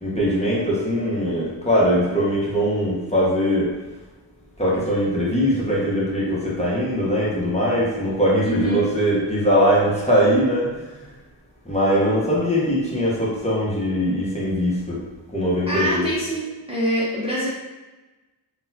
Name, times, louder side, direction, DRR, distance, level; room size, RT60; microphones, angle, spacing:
voice 1, 0.0-3.7 4.6-11.0 11.6-15.0 15.3-16.1, equal, 15° left, -7 dB, 1.0 m, -21 dB
voice 2, 8.4-8.8 15.7-17.5, right 1 dB, 15° right, -8 dB, 0.7 m, -25 dB
3.9 x 2.4 x 2.8 m, 1.2 s
wide cardioid pair, 65°, 46 cm